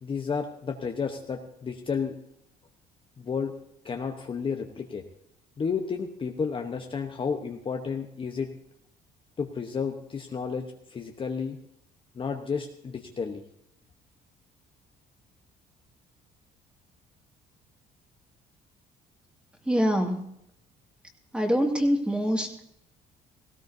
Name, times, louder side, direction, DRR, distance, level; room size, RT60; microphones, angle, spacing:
voice 1, 0.0-2.1 3.2-3.5 3.8-5.0 5.6-8.5 9.4-11.6 12.1-13.4, left 5 dB, 30° left, 3 dB, 1.0 m, -32 dB
voice 2, 19.7-20.3 21.3-22.5, equal, 5° right, 2 dB, 2.2 m, -24 dB
17.5 x 16.5 x 2.8 m, 0.76 s
cardioid pair, 110°, 17 cm